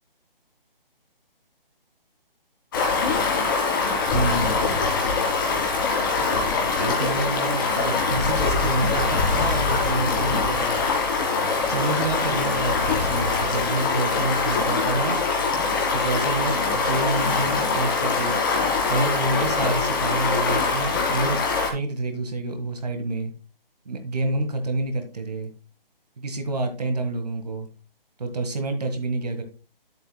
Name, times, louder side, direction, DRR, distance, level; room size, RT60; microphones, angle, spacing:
Stream, 2.7-21.7, left 4 dB, 20° left, 1.7 m, -23 dB
voice 1, 4.1-4.6 6.8-10.8 11.6-15.2 15.9-18.4 18.9-23.3 23.8-25.5 26.2-27.7 28.2-29.4, right 2 dB, 45° right, 6 dB, 1.6 m, -28 dB
9.4 x 7.8 x 2.2 m, 0.33 s
hypercardioid pair, 170°, 29 cm